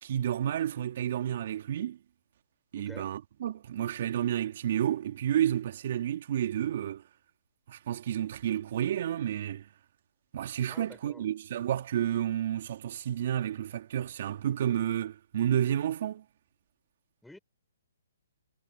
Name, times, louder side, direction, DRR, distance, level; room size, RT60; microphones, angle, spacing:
voice 1, 0.0-2.0 2.7-7.0 7.7-9.6 10.3-16.2, right 10 dB, 50° right, 3.0 m, -30 dB
voice 2, 2.8-3.1 10.7-11.3 17.2-17.4, left 1 dB, 5° left, 5.9 m, -50 dB
hypercardioid pair, 145°, 0 cm